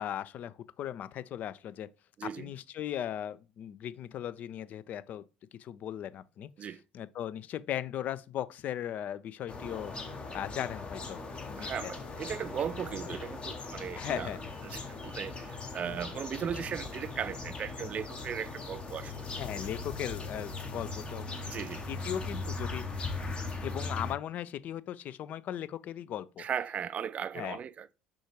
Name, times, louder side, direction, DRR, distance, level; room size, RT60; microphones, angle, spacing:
voice 1, 0.0-1.9 2.4-5.3 5.5-6.5 6.9-9.9 10.3-11.9 13.9-14.4 15.8-15.9 19.4-21.3 21.9-22.8 23.6-26.5 27.3-27.6, left 10 dB, 45° left, 0.3 m, -38 dB
voice 2, 2.2-2.5 6.6-6.8 11.6-14.3 14.6-19.3 21.4-21.8 26.4-27.9, right 8 dB, 35° right, 0.3 m, -37 dB
sound 1, 9.5-24.1, left 3 dB, 30° left, 0.8 m, -39 dB
6.1 x 2.4 x 3.0 m
figure-of-eight pair, 60°, 4 cm